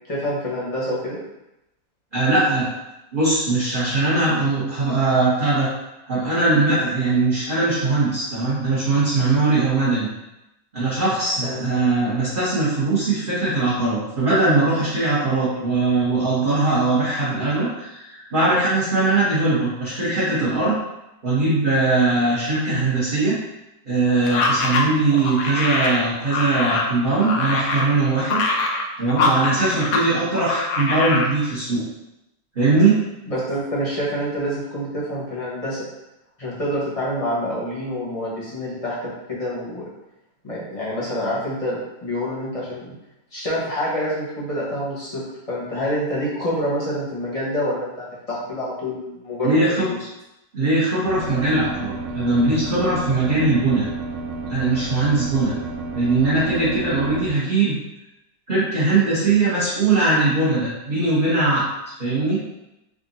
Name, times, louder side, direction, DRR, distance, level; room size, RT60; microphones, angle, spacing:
voice 1, 0.1-1.2 11.4-11.7 33.3-35.9 36.4-39.0 39.3-39.9 40.4-42.9 43.3-49.6 49.9-50.0, equal, 25° left, -7 dB, 1.0 m, -27 dB
voice 2, 2.1-2.7 3.1-5.7 6.1-10.1 10.7-20.8 21.2-23.4 23.8-28.4 29.0-31.8 32.5-33.0 49.4-49.9 50.5-53.8 54.5-55.5 55.9-57.8 58.5-61.6 62.0-62.4, right 3 dB, 35° right, -11 dB, 1.1 m, -20 dB
sound 1, 24.2-30.1 30.3-31.3, left 3 dB, 70° left, 0.9 m, -23 dB
sound 2, 51.1-57.3, right 3 dB, 70° right, 1.0 m, -31 dB
3.6 x 2.5 x 4.1 m, 0.91 s
omnidirectional pair, 1.9 m